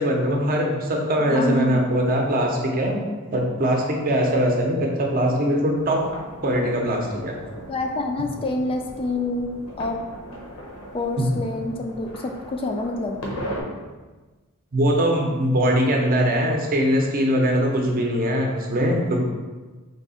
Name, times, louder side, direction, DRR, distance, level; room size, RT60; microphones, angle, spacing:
voice 1, 0.0-3.0 3.3-6.0 6.4-7.3 11.2-11.3 14.7-19.2, equal, 40° right, 1 dB, 0.6 m, -21 dB
voice 2, 1.2-1.8 7.7-9.5 9.8-10.0 10.9-13.2, left 2 dB, 25° left, 3 dB, 0.3 m, -27 dB
sound 1, 5.7-13.6, equal, 85° left, 0.9 m, -38 dB
3.3 x 2.7 x 4.1 m, 1.3 s
head